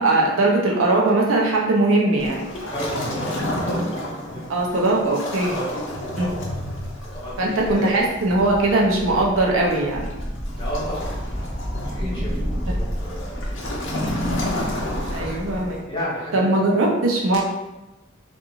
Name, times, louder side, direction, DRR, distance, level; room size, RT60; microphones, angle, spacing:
voice 1, 0.0-2.5 4.5-5.6 6.2-6.3 7.4-10.1 12.0-12.4 15.1-15.8 16.3-17.4, right 2 dB, 85° right, -2 dB, 0.6 m, -20 dB
Waves surf, 2.2-15.8, left 1 dB, 70° left, 0.6 m, -31 dB
voice 2, 2.7-4.5 5.4-5.8 6.2-6.5 7.1-8.0 10.5-11.1 11.8-14.1 15.1-16.4, equal, 25° left, -9 dB, 1.2 m, -33 dB
sound 1, 8.2-15.3, equal, 30° right, 0.6 m, -30 dB
2.5 x 2.3 x 2.9 m, 1.0 s
head